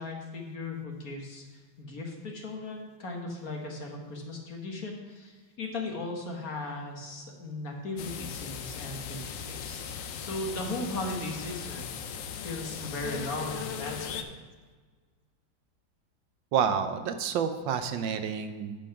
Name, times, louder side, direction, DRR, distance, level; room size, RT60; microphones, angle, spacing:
voice 1, 0.0-14.3, left 2 dB, 50° left, 1 dB, 1.7 m, -37 dB
sound 1, 8.0-14.2, left 7 dB, 70° left, 0.7 m, -38 dB
voice 2, 16.5-18.8, right 7 dB, 75° right, 9 dB, 1.4 m, -29 dB
10.0 x 5.6 x 5.7 m, 1.4 s
omnidirectional pair, 2.1 m